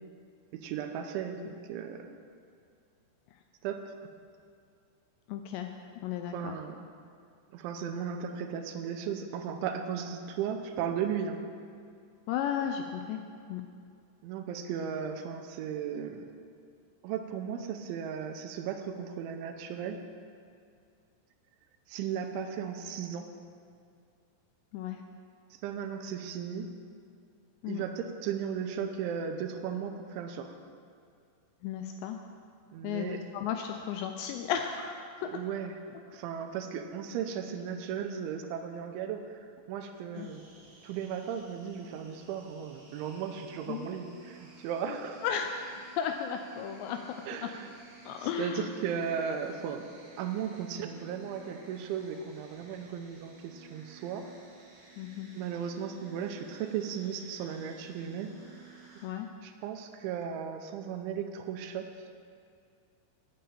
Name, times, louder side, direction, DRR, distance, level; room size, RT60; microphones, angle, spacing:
voice 1, 0.5-2.1 3.6-3.9 6.3-6.9 7.5-11.4 14.2-16.3 17.0-20.0 21.9-23.3 25.5-26.7 27.7-30.6 32.7-33.2 35.2-35.8 36.1-40.4 40.8-45.2 47.3-47.7 48.2-54.3 55.3-58.3 59.4-61.9, right 7 dB, 85° right, 5 dB, 3.1 m, -36 dB
voice 2, 5.3-6.6 12.3-13.2 13.5-13.6 24.7-25.0 27.6-27.8 31.6-32.2 32.8-35.4 40.1-40.3 43.7-43.9 44.9-47.5 48.1-48.7 55.0-55.3 59.0-59.3, left 8 dB, 85° left, 5 dB, 2.5 m, -35 dB
sound 1, 40.1-59.1, right 5 dB, 70° right, 1.4 m, -55 dB
9.0 x 6.8 x 8.6 m, 2.3 s
omnidirectional pair, 5.4 m